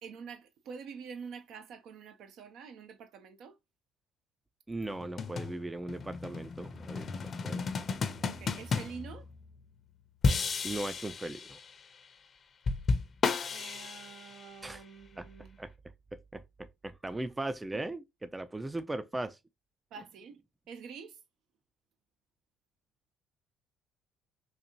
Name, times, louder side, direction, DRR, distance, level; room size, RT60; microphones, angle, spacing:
voice 1, 0.0-3.5 8.2-9.3 13.5-15.6 17.7-17.8 19.9-20.4 20.7-21.2, right 6 dB, 65° right, 0.6 m, -47 dB
voice 2, 4.7-7.7 10.6-11.6 14.6-14.8 15.2-15.3 15.6-15.7 16.1-19.4, right 2 dB, 15° right, 0.4 m, -38 dB
sound 1, 4.9-9.7 10.2-11.8 12.7-14.6, left 4 dB, 45° left, 0.6 m, -33 dB
4.1 x 2.5 x 2.9 m
hypercardioid pair, 60°, 0 cm